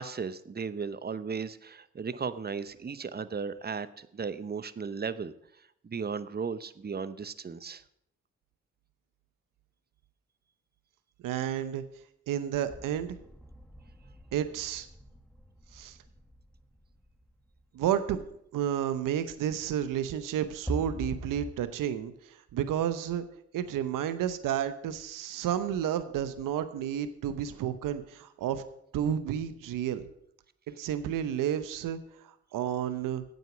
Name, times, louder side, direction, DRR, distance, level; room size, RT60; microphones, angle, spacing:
voice 1, 0.0-7.8, right 5 dB, 30° right, 14 dB, 0.8 m, -36 dB
voice 2, 11.2-11.8 12.3-13.2 14.3-14.9 15.7-16.0 17.7-18.2 18.5-23.3 23.5-28.6 28.9-30.1 30.7-32.0 32.2-33.2, right 10 dB, 80° right, 12 dB, 0.8 m, -31 dB
sound 1, 12.7-18.2 20.7-21.5, right 1 dB, ahead, 1.4 m, -43 dB
9.4 x 7.9 x 6.1 m, 0.73 s
supercardioid pair, 45°, 32 cm